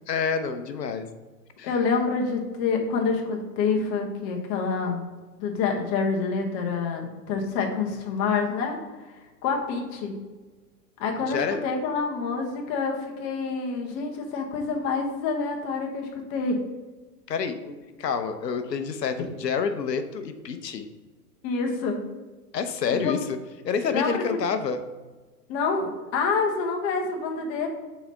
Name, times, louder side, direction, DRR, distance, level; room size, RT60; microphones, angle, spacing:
voice 1, 0.1-1.1 1.6-1.7 11.3-11.6 17.3-17.6 18.0-20.9 22.5-23.4 23.6-24.8, left 6 dB, 80° left, 8 dB, 0.9 m, -28 dB
voice 2, 1.6-5.0 5.4-8.8 9.4-10.1 11.0-16.6 17.6-17.7 21.4-22.0 23.0-23.1 23.9-24.5 25.5-27.7, left 4 dB, 35° left, 1 dB, 1.4 m, -27 dB
5.8 x 4.2 x 5.6 m, 1.3 s
hypercardioid pair, 120°, 49 cm